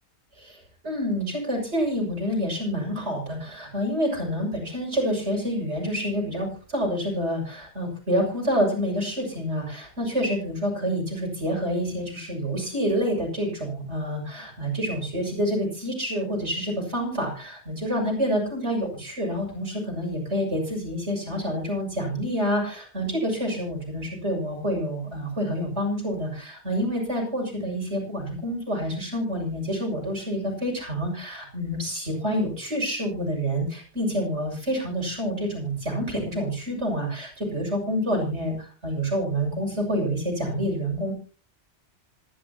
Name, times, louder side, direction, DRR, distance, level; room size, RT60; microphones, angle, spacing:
voice 1, 0.8-41.1, equal, 80° right, -1 dB, 7.1 m, -28 dB
26.0 x 10.5 x 2.9 m, 0.37 s
omnidirectional pair, 1.2 m